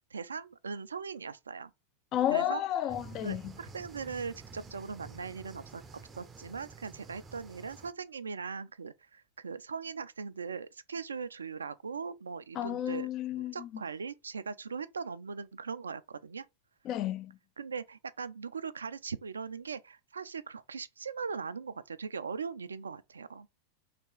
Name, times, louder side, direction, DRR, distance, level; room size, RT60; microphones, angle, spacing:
voice 1, 0.1-1.7 2.3-2.6 3.2-13.1 13.3-16.5 17.6-23.5, right 5 dB, 70° right, 0.3 m, -40 dB
voice 2, 2.1-3.5 12.6-13.8 16.8-17.4, left 11 dB, 35° left, 0.4 m, -32 dB
sound 1, 2.9-7.9, right 4 dB, 20° right, 0.5 m, -50 dB
3.3 x 2.9 x 4.6 m
figure-of-eight pair, 90°, 0 cm